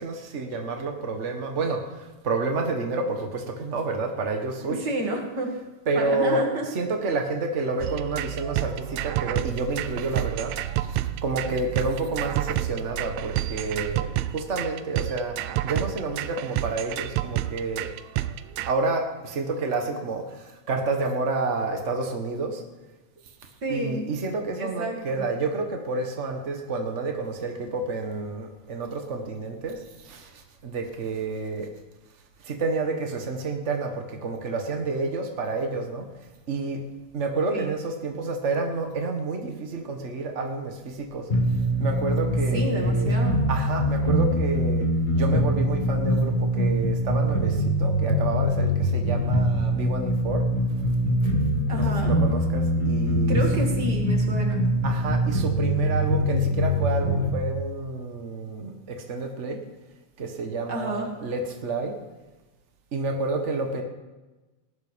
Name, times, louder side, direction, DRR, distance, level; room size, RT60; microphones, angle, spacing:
voice 1, 0.0-4.9 5.8-10.5 10.8-15.4 15.6-17.9 18.6-22.6 23.7-31.7 32.4-36.0 36.5-36.8 37.1-41.3 41.8-43.2 43.5-44.9 45.1-50.4 51.7-53.4 54.8-59.6 60.2-61.9 62.9-63.8, right 3 dB, 65° right, 3 dB, 0.7 m, -29 dB
voice 2, 4.7-5.5 5.9-6.7 23.6-24.2 24.6-25.3 37.5-37.7 42.5-43.4 51.7-52.2 53.3-54.6 60.7-61.1, right 2 dB, 35° right, 2 dB, 2.4 m, -30 dB
sound 1, 7.8-18.7, right 13 dB, 85° right, 1.6 m, -29 dB
sound 2, 41.3-57.3, equal, 20° left, 1.4 m, -23 dB
19.0 x 11.5 x 5.2 m, 1.1 s
omnidirectional pair, 3.8 m